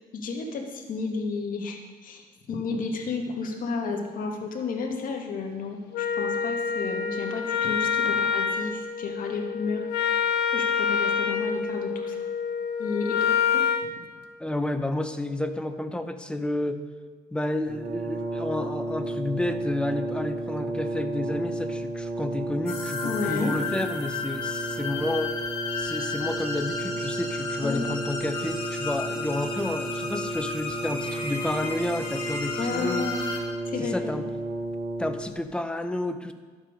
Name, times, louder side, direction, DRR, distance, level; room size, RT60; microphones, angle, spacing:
voice 1, 0.1-12.3 12.8-13.6 23.0-23.5 27.6-27.8 32.6-33.2 33.7-34.1, left 4 dB, 55° left, 2 dB, 1.9 m, -32 dB
Wind instrument woodwind instrument, 5.9-13.9, left 7 dB, 75° left, 0.9 m, -27 dB
voice 2, 14.4-16.8 17.3-25.3 25.8-33.1 33.8-34.2 35.0-36.3, left 1 dB, 5° left, 8 dB, 0.7 m, -30 dB
Brass instrument, 17.7-35.5, right 2 dB, 70° right, 1.6 m, -33 dB
sound 1, 22.7-33.4, left 4 dB, 35° left, 2.3 m, -34 dB
12.0 x 7.4 x 5.2 m, 1.5 s
cardioid pair, 110°, 17 cm